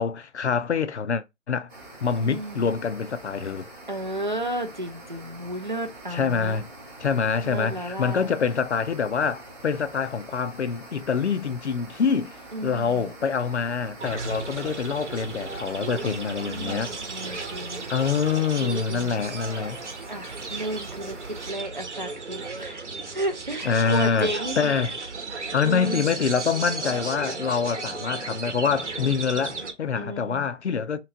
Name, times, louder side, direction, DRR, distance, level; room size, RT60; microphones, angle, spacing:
voice 1, 0.0-1.7 2.0-3.7 6.1-6.7 7.0-12.3 12.6-16.9 17.9-19.8 23.6-24.3 24.6-24.9 25.5-31.0, left 6 dB, 60° left, 0.5 m, -25 dB
sound 1, 1.7-21.5, right 2 dB, 10° right, 0.9 m, -45 dB
voice 2, 2.2-2.7 3.9-6.6 7.4-8.3 12.5-13.1 16.0-17.9 18.6-19.2 20.1-22.9 23.1-24.7 25.6-26.1 30.0-30.5, right 1 dB, 40° right, 0.4 m, -33 dB
sound 2, 14.0-29.7, right 3 dB, 60° right, 0.9 m, -35 dB
3.0 x 2.9 x 3.8 m
figure-of-eight pair, 160°, 39 cm